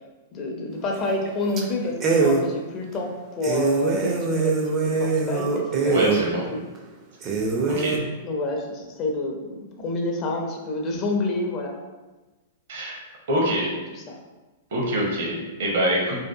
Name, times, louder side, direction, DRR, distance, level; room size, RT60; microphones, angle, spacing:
voice 1, 0.3-6.6 8.2-11.8 13.9-14.1, left 2 dB, 35° left, 0 dB, 0.4 m, -29 dB
sound 1, 0.9-1.3 1.6-1.7 2.0-2.4 2.9-3.0 3.4-6.2 6.7-6.8 7.2-8.0, right 4 dB, 30° right, 0.4 m, -23 dB
voice 2, 5.9-6.5 7.7-8.0 12.7-13.0 13.3-13.7 14.7-16.2, equal, 60° right, -1 dB, 0.7 m, -25 dB
2.6 x 2.3 x 2.2 m, 1.2 s
figure-of-eight pair, 105°, 0 cm